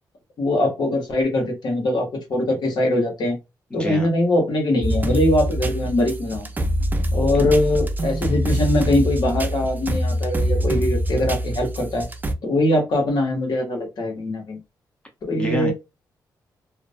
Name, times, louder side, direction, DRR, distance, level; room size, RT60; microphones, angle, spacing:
voice 1, 0.4-3.4 3.7-6.5 7.1-12.1 12.4-14.6 15.2-15.7, left 1 dB, 70° left, 1.1 m, -22 dB
voice 2, 3.7-4.1 7.3-7.5 15.4-15.7, left 1 dB, 15° left, 0.9 m, -28 dB
sound 1, 4.8-12.3, equal, 25° right, 0.5 m, -24 dB
2.4 x 2.1 x 2.5 m
cardioid pair, 75°, 8 cm